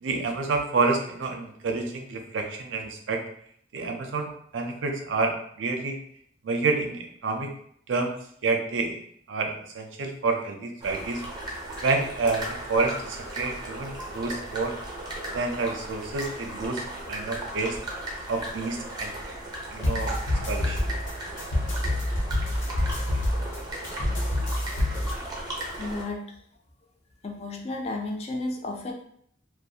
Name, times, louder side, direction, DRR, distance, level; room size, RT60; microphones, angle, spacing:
voice 1, 0.0-3.2 3.7-6.0 6.4-7.5 7.9-8.1 8.4-9.0 9.3-11.2 11.8-14.7 15.3-16.8 17.1-17.8 18.3-19.1 19.7-20.1 20.5-20.9, right 3 dB, 75° right, 3 dB, 0.4 m, -28 dB
sound 1, 10.8-26.0, right 1 dB, 20° right, 0.5 m, -36 dB
sound 2, 19.8-25.1, left 1 dB, 75° left, 0.7 m, -27 dB
voice 2, 25.8-26.2 27.2-28.9, left 2 dB, 35° left, 1 dB, 0.3 m, -32 dB
2.3 x 2.1 x 2.7 m, 0.67 s
head